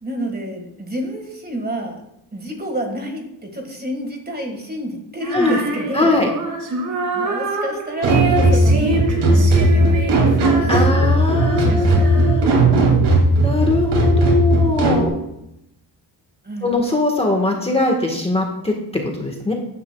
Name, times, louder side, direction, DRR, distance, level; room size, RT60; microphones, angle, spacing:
voice 1, 0.0-2.0 2.3-6.2 7.1-12.1 16.4-16.7, right 1 dB, 20° right, 4 dB, 1.6 m, -29 dB
Female singing, 5.2-12.6, right 3 dB, 45° right, 2.0 m, -25 dB
voice 2, 5.9-6.3 10.7-12.5 13.4-15.1 16.6-18.7 19.0-19.5, left 2 dB, 15° left, 1 dB, 1.3 m, -21 dB
sound 1, 8.0-15.1, right 1 dB, 70° right, 2.5 m, -16 dB
13.0 x 9.6 x 2.2 m, 0.83 s
cardioid pair, 135°, 42 cm